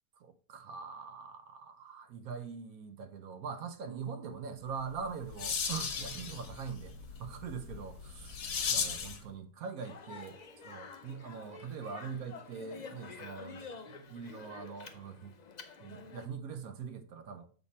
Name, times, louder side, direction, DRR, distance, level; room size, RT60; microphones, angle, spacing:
voice 1, 0.2-8.4 8.7-10.4 10.6-15.3 15.8-17.5, right 6 dB, 70° right, 1.2 m, -43 dB
Keyboard (musical), 3.8-5.6, right 9 dB, 40° right, 0.9 m, -55 dB
sound 1, 4.8-9.3, left 6 dB, 85° left, 1.5 m, -37 dB
Speech, 9.8-16.3, left 4 dB, 55° left, 0.4 m, -49 dB
7.0 x 4.2 x 4.1 m
omnidirectional pair, 1.6 m